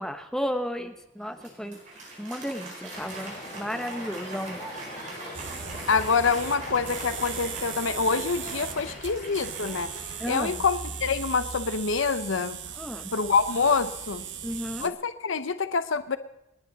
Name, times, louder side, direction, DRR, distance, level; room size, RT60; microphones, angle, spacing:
voice 1, 0.0-1.8 2.2-4.6 10.2-10.6 12.8-13.1 14.4-14.9, equal, 5° left, 6 dB, 1.0 m, -33 dB
Applause, 1.2-10.7, right 2 dB, 40° right, 4.8 m, -42 dB
Traffic noise roadway noise, 2.9-8.9, left 1 dB, 30° left, 3.6 m, -44 dB
sound 1, 5.3-14.9, right 7 dB, 65° right, 1.1 m, -38 dB
voice 2, 5.9-12.6 13.1-14.2 14.8-16.2, left 5 dB, 75° left, 12 dB, 0.7 m, -26 dB
28.5 x 10.0 x 4.1 m, 0.90 s
head